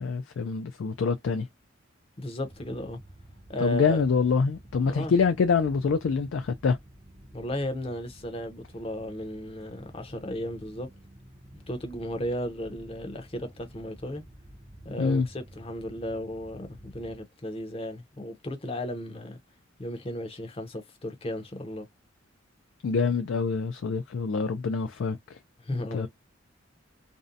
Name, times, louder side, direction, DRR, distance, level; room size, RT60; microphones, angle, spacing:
voice 1, 0.0-1.5 3.6-6.8 15.0-15.3 22.8-25.4 25.7-26.1, left 5 dB, 65° left, 0.3 m, -26 dB
voice 2, 2.2-3.0 3.5-4.0 4.8-5.1 7.3-10.9 11.7-14.2 14.8-19.4 19.8-21.9 25.6-26.1, equal, 30° left, 0.6 m, -35 dB
sound 1, 2.5-17.2, equal, 20° right, 0.5 m, -51 dB
2.6 x 2.0 x 2.5 m
head